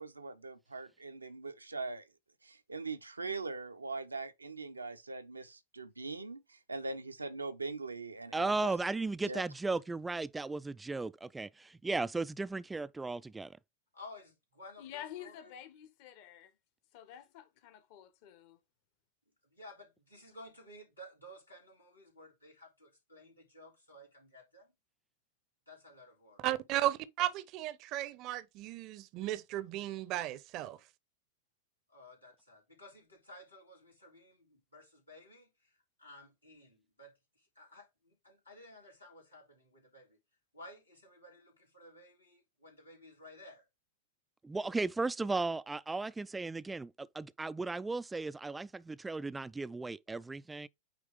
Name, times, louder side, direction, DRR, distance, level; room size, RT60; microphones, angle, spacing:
voice 1, 0.0-2.0 2.4-8.7 9.2-9.4, right 3 dB, 80° right, 0.7 m, -41 dB
voice 2, 8.3-13.6 44.4-50.7, right 3 dB, 10° right, 0.3 m, -36 dB
voice 3, 13.9-15.5 19.5-24.7 25.7-26.4 31.9-35.5 36.0-37.1 37.5-37.9 38.2-40.2 40.5-43.6, left 1 dB, 85° left, 3.1 m, -54 dB
voice 4, 14.8-16.5 16.9-18.6, left 11 dB, 45° left, 1.1 m, -49 dB
voice 5, 26.4-30.8, right 14 dB, 40° right, 0.7 m, -35 dB
9.0 x 3.1 x 3.5 m
figure-of-eight pair, 90°, 0 cm